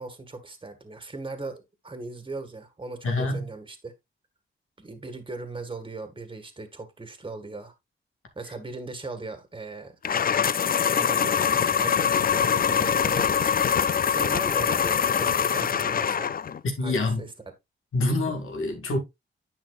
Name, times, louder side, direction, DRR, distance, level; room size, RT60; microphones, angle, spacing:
voice 1, 0.0-3.9 4.8-7.7 8.3-10.0 10.9-13.8 14.1-16.4 16.8-17.3, right 3 dB, 25° right, 1.7 m, -38 dB
voice 2, 3.0-3.5 16.8-17.3 17.9-19.0, left 2 dB, 90° left, 2.2 m, -26 dB
sound 1, 10.0-16.6, left 7 dB, 45° left, 0.4 m, -23 dB
9.8 x 5.8 x 2.4 m
wide cardioid pair, 95°, 21 cm